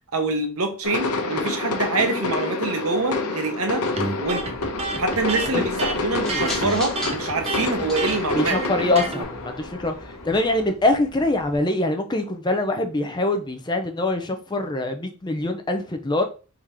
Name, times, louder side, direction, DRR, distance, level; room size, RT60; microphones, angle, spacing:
voice 1, 0.1-3.9 4.2-4.6 5.0-8.6, right 2 dB, 80° right, 5 dB, 1.0 m, -25 dB
sound 1, 0.8-10.7, left 2 dB, 90° left, 0.8 m, -28 dB
Electric guitar, 4.0-9.2, right 3 dB, 25° right, 0.7 m, -30 dB
sound 2, 4.2-11.6, left 1 dB, ahead, 1.2 m, -39 dB
voice 2, 8.3-16.2, left 2 dB, 20° left, 6 dB, 0.5 m, -24 dB
3.7 x 2.9 x 4.7 m, 0.35 s
head